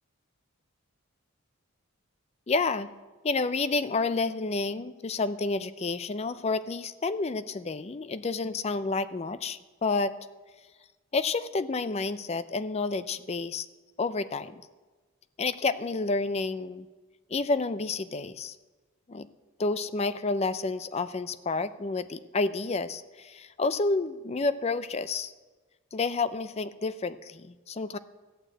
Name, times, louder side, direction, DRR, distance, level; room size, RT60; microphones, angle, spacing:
voice 1, 2.5-2.9 3.2-10.1 11.1-13.7 14.0-14.6 15.4-16.9 17.3-18.6 19.1-19.3 19.6-25.3 25.9-28.0, left 3 dB, 30° left, 14 dB, 0.4 m, -30 dB
14.0 x 9.1 x 7.7 m, 1.3 s
head